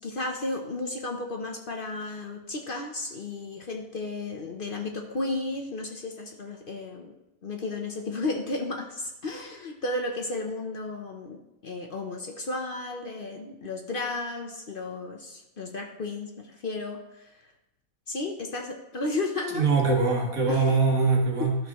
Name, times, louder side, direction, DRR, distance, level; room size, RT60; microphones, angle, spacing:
voice 1, 0.0-7.2 7.4-17.4 18.1-19.7 20.5-20.6 21.4-21.5, left 2 dB, 45° left, 3 dB, 0.8 m, -33 dB
voice 2, 19.5-21.6, right 4 dB, 80° right, 0 dB, 1.9 m, -22 dB
12.5 x 6.5 x 3.0 m, 0.91 s
omnidirectional pair, 1.5 m